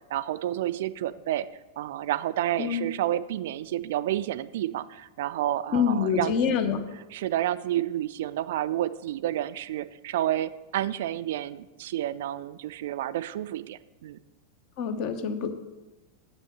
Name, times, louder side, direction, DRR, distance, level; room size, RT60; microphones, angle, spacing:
voice 1, 0.0-1.5 1.8-6.4 7.1-14.2, right 12 dB, 55° right, 15 dB, 0.3 m, -30 dB
voice 2, 5.7-6.8 14.8-15.5, left 7 dB, 45° left, 8 dB, 0.9 m, -26 dB
8.1 x 5.9 x 6.8 m, 1.1 s
figure-of-eight pair, 90°, 0 cm